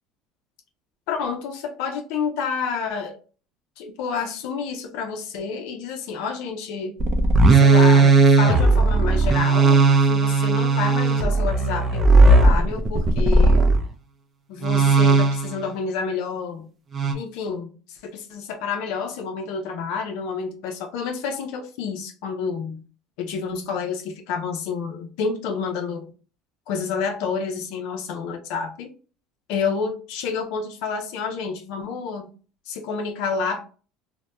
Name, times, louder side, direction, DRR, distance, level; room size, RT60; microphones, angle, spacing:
voice 1, 1.1-3.2 3.8-7.0 7.5-13.7 14.5-16.7 17.1-22.8 23.2-26.1 26.7-28.9 29.5-32.3 32.7-33.6, left 5 dB, 75° left, 0.5 m, -29 dB
sound 1, 7.0-13.8 14.6-15.6 16.9-17.1, right 3 dB, 30° right, 0.5 m, -16 dB
2.1 x 2.1 x 2.8 m
supercardioid pair, 95°, 0 cm